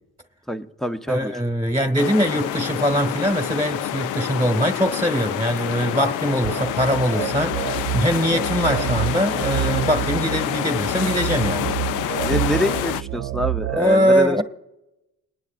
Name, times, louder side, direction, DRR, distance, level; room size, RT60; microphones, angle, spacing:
voice 1, 0.5-1.3 12.1-14.4, equal, ahead, 0.7 m, -25 dB
voice 2, 1.1-11.7 13.7-14.4, equal, 15° right, 1.3 m, -22 dB
sound 1, 2.0-13.0, left 12 dB, 80° left, 0.5 m, -27 dB
sound 2, 6.4-13.8, right 15 dB, 55° right, 0.5 m, -28 dB
29.5 x 9.9 x 2.4 m
cardioid pair, 90°, 30 cm